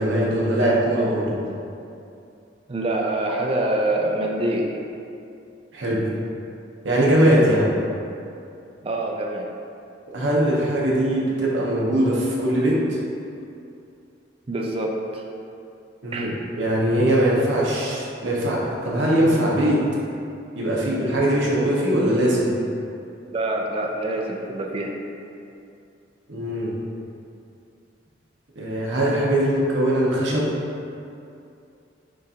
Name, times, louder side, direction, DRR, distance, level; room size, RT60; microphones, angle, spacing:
voice 1, 0.0-1.4 5.7-6.1 6.8-7.7 10.1-12.8 16.0-19.8 20.5-22.5 26.3-26.7 28.6-30.5, right 1 dB, 75° right, -5 dB, 0.8 m, -21 dB
voice 2, 2.7-4.7 8.8-9.5 14.5-15.2 16.1-16.3 23.3-24.9, right 1 dB, 30° right, 0 dB, 0.4 m, -25 dB
6.2 x 2.4 x 2.8 m, 2.6 s
head